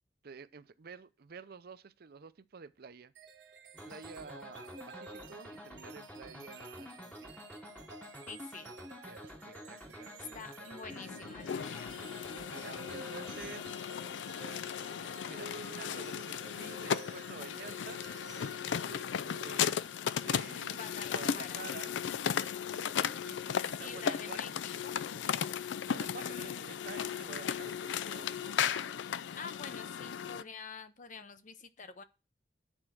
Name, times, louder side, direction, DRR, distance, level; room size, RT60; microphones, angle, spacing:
voice 1, 0.2-3.1 3.8-7.3 9.0-11.1 12.5-14.1 15.2-18.0 19.4-21.9 23.0-24.5 25.8-28.7, right 5 dB, 55° right, 0.5 m, -50 dB
sound 1, 3.2-19.8, right 3 dB, 75° right, 1.1 m, -52 dB
sound 2, 3.7-13.7, left 1 dB, 10° left, 1.0 m, -49 dB
voice 2, 8.3-8.7 10.2-12.0 20.7-21.7 23.8-24.5 24.8-25.0 26.1-26.6 29.4-32.0, left 5 dB, 45° left, 0.7 m, -47 dB
sound 3, 10.9-30.4, left 8 dB, 80° left, 0.4 m, -36 dB
8.8 x 4.4 x 6.2 m
head